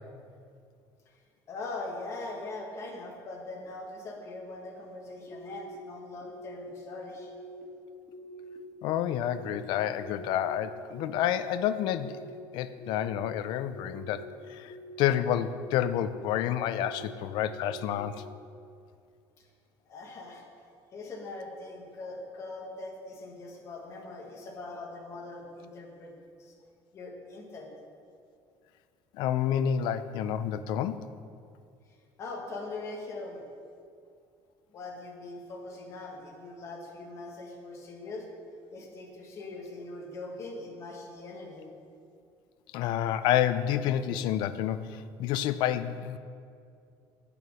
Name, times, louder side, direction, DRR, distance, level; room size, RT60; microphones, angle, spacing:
voice 1, 1.5-7.3 19.9-20.4 20.9-26.1 26.4-26.5 26.9-27.7 32.2-33.4 34.7-38.3 38.7-41.7, left 2 dB, 35° left, 0 dB, 1.4 m, -41 dB
sound 1, 5.3-5.8 6.2-6.7 7.1-7.6 8.1-8.6 9.0-9.5 10.0-10.4 10.9-11.4 11.8-12.3 12.8-13.3 13.7-14.2 14.7-15.1 15.6-16.1 16.5-17.0 17.5-18.0, right 2 dB, 10° right, 1.6 m, -46 dB
voice 2, 8.8-12.2 12.5-14.2 14.5-18.2 29.2-31.0 42.7-46.2, left 10 dB, 60° left, 12 dB, 0.4 m, -29 dB
8.7 x 6.7 x 6.3 m, 2.3 s
cardioid pair, 175°, 9 cm